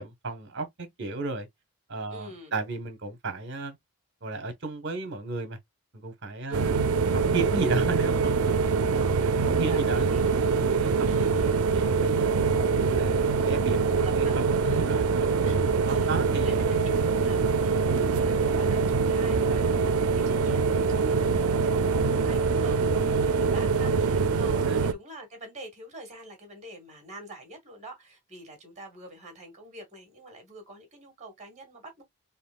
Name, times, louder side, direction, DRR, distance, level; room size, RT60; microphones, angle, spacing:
voice 1, 0.0-1.5 1.9-3.8 4.2-5.6 5.9-6.8 7.1-8.7 9.2-10.2 10.6-11.4 11.7-12.4 12.7-13.8 14.2-15.3 15.8-16.6 17.9-18.1 24.7-24.8, right 3 dB, 55° right, 1.1 m, -34 dB
voice 2, 2.1-2.6 6.5-6.6 8.6-10.3 11.1-11.5 13.9-14.4 14.6-15.0 15.4-15.6 15.9-32.0, right 1 dB, 35° right, 2.0 m, -46 dB
sound 1, 6.5-24.9, right 5 dB, 85° right, 0.4 m, -24 dB
4.2 x 3.5 x 2.3 m
head